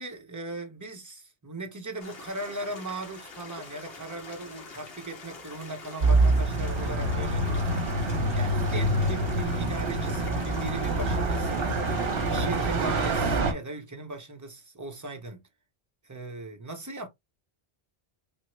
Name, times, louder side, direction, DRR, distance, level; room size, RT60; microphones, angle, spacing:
voice 1, 0.0-15.4 16.0-17.1, right 2 dB, 20° right, 0.6 m, -38 dB
sound 1, 2.0-13.3, left 3 dB, 70° left, 1.2 m, -45 dB
sound 2, 6.0-13.5, right 2 dB, 70° right, 0.9 m, -26 dB
3.5 x 2.0 x 3.0 m
omnidirectional pair, 1.0 m